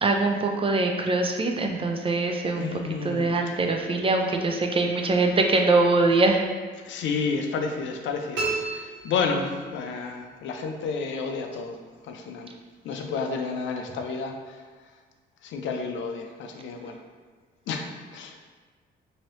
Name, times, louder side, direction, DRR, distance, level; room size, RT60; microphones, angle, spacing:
voice 1, 0.0-6.4, right 3 dB, 30° right, 3 dB, 0.4 m, -23 dB
voice 2, 2.6-3.3 6.8-11.8 12.0-12.5 12.8-14.6 15.4-17.0 17.7-17.9 18.1-18.4, left 4 dB, 70° left, 4 dB, 0.4 m, -30 dB
sound 1, 8.3-9.9, right 3 dB, 70° right, 1.3 m, -32 dB
2.9 x 2.7 x 3.1 m, 1.4 s
cardioid pair, 90°, 20 cm